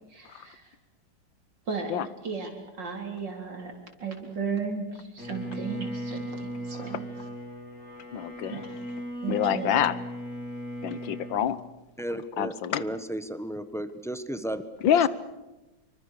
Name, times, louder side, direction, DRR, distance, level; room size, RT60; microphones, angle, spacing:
voice 1, 0.1-0.7 1.7-1.9 2.2-2.5 2.7-3.7 4.0-7.1 8.5-8.8 9.2-9.8, right 5 dB, 70° right, 3 dB, 4.5 m, -35 dB
Bowed string instrument, 5.2-11.5, equal, 50° left, 4.3 m, -37 dB
voice 2, 8.1-8.7 9.3-10.0 10.8-11.6 12.4-13.0 14.8-15.1, left 9 dB, 85° left, 16 dB, 1.8 m, -26 dB
voice 3, 12.0-12.5 12.8-14.6, right 1 dB, ahead, 11 dB, 1.0 m, -33 dB
26.5 x 24.0 x 6.7 m, 1.1 s
omnidirectional pair, 2.0 m